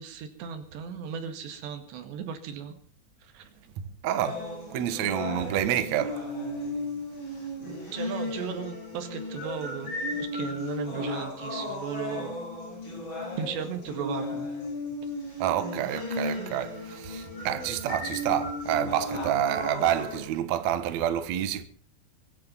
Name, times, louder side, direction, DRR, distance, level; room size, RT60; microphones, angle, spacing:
voice 1, 0.0-2.7 3.2-3.5 7.9-9.9 10.2-12.4 13.4-14.5, right 8 dB, 85° right, 4.2 m, -36 dB
voice 2, 4.0-4.4 4.7-6.2 15.4-21.6, right 11 dB, 65° right, 1.9 m, -28 dB
sound 1, 4.2-20.2, left 2 dB, 25° left, 7.9 m, -35 dB
23.5 x 10.5 x 5.7 m
omnidirectional pair, 4.9 m